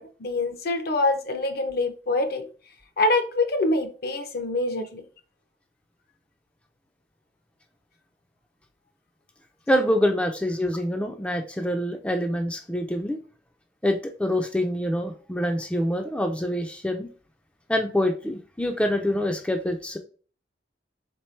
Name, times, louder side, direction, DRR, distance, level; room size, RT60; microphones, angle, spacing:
voice 1, 0.0-2.4 3.0-5.0, left 2 dB, 60° left, 8 dB, 0.7 m, -25 dB
voice 2, 9.7-13.2 13.8-17.1 17.7-20.0, left 1 dB, 5° left, 4 dB, 0.4 m, -25 dB
4.4 x 3.6 x 3.1 m, 0.39 s
head